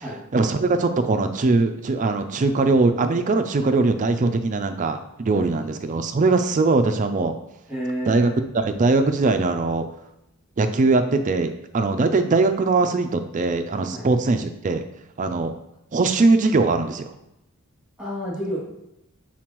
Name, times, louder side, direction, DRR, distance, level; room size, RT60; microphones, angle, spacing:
voice 1, 0.3-7.3 8.1-8.3 8.5-9.8 10.6-14.8 15.2-15.5 15.9-17.1, right 3 dB, 35° right, 7 dB, 0.4 m, -21 dB
voice 2, 7.7-8.4 13.9-14.1 18.0-18.6, equal, 5° right, -9 dB, 2.4 m, -30 dB
7.6 x 4.3 x 3.0 m, 0.86 s
head